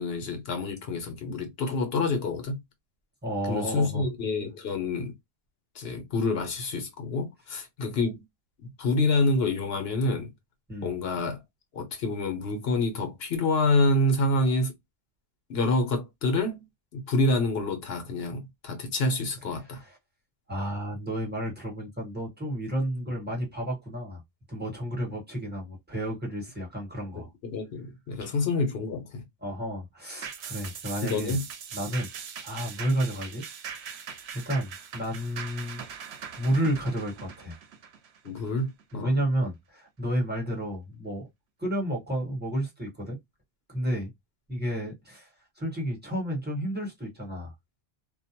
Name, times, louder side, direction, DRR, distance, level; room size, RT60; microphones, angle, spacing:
voice 1, 0.0-2.6 3.5-5.1 5.7-8.2 8.8-10.3 10.8-11.4 11.7-14.7 15.5-16.6 16.9-19.8 27.1-29.2 31.0-31.4 38.2-39.1, left 2 dB, 75° left, 1.0 m, -27 dB
voice 2, 3.2-4.0 10.7-10.9 19.7-20.0 20.5-24.2 24.5-27.3 28.2-28.3 29.4-31.4 31.7-32.1 32.4-33.4 33.7-34.0 34.3-35.8 36.4-37.6 38.9-41.3 41.6-43.2 43.7-44.1 44.5-45.3 45.6-47.5, right 1 dB, 10° right, 1.1 m, -31 dB
sound 1, 30.2-38.9 39.3-39.4, right 7 dB, 85° right, 0.8 m, -41 dB
2.5 x 2.1 x 2.8 m
omnidirectional pair, 1.1 m